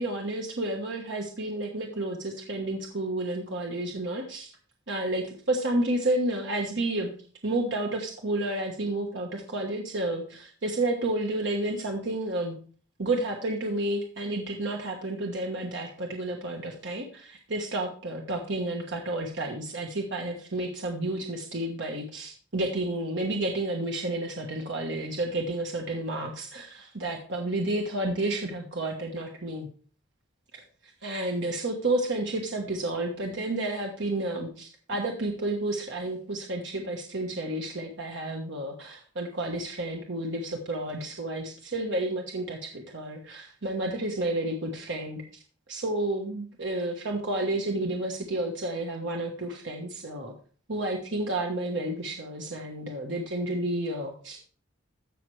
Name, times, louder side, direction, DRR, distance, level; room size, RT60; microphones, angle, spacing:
voice 1, 0.0-4.5 4.9-7.1 7.4-12.6 13.0-29.7 30.5-45.2 45.7-50.3 50.7-54.5, right 1 dB, 65° right, 1 dB, 1.3 m, -31 dB
15.0 x 5.9 x 3.3 m, 0.43 s
head